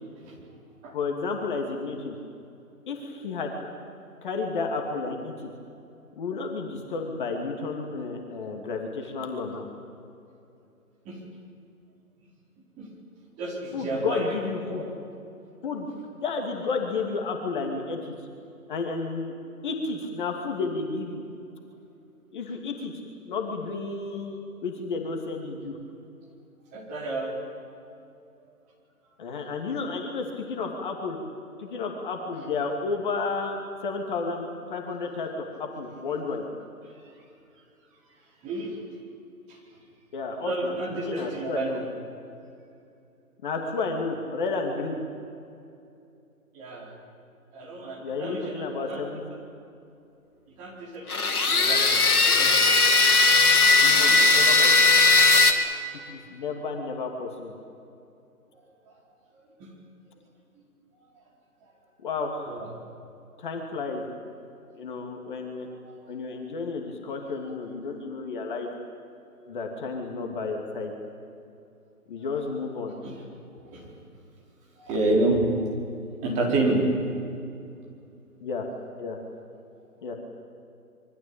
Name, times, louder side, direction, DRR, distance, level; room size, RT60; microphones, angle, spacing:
voice 1, 0.9-2.1 2.9-3.5 4.2-5.5 6.2-9.7 13.7-14.8 15.6-15.9 16.2-18.1 18.7-19.4 19.6-21.2 22.3-22.9 23.3-25.8 29.2-31.2 31.6-36.5 40.1-41.9 43.4-45.0 48.0-49.2 53.8-54.9 56.1-57.6 62.0-62.6 63.4-64.1 64.8-65.7 66.1-68.7 69.5-70.9 72.1-72.9 75.0-75.5 78.4-78.7 79.0-79.2 80.0-80.1, left 4 dB, 35° left, 2 dB, 2.7 m, -32 dB
voice 2, 13.4-14.2 14.7-14.9 26.7-27.4 31.6-31.9 38.4-38.8 39.5-39.6 40.4-41.9 46.5-46.9 47.5-49.0 50.6-52.6 53.9-54.2 59.6-59.7 62.5-62.7 73.0-73.1 73.5-73.9 74.8-75.5 76.2-76.8, right 2 dB, 15° right, -2 dB, 4.4 m, -30 dB
sound 1, 51.1-55.5, left 3 dB, 70° left, 3.2 m, -18 dB
26.5 x 23.5 x 8.8 m, 2.6 s
figure-of-eight pair, 155°, 45 cm